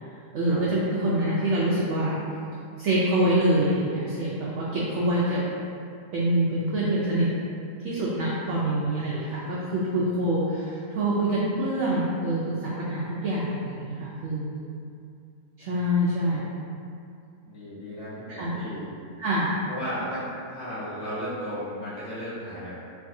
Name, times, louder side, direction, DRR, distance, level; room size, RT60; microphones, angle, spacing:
voice 1, 0.3-2.1 2.8-5.4 6.1-7.3 7.8-14.7 15.6-16.6 18.3-18.6 19.2-19.6, right 1 dB, 70° right, -6 dB, 0.7 m, -25 dB
voice 2, 17.4-18.9 19.7-22.8, equal, 45° left, -12 dB, 1.4 m, -35 dB
3.5 x 3.2 x 2.6 m, 2.5 s
omnidirectional pair, 1.7 m